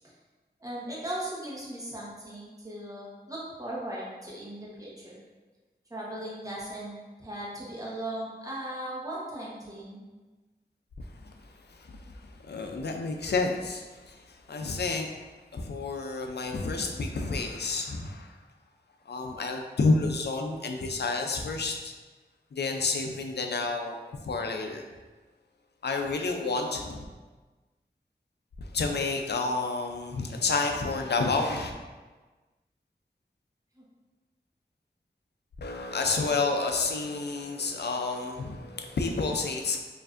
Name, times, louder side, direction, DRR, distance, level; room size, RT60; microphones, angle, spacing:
voice 1, 0.6-5.2 5.9-10.0 33.8-33.9, right 1 dB, 20° right, -6 dB, 0.9 m, -38 dB
voice 2, 11.0-11.3 11.7-15.1 15.5-18.4 19.1-21.9 22.5-24.9 25.8-27.0 28.6-31.7 35.6-39.8, left 3 dB, 75° left, 3 dB, 0.4 m, -30 dB
4.5 x 2.6 x 2.5 m, 1.3 s
wide cardioid pair, 60°, 18 cm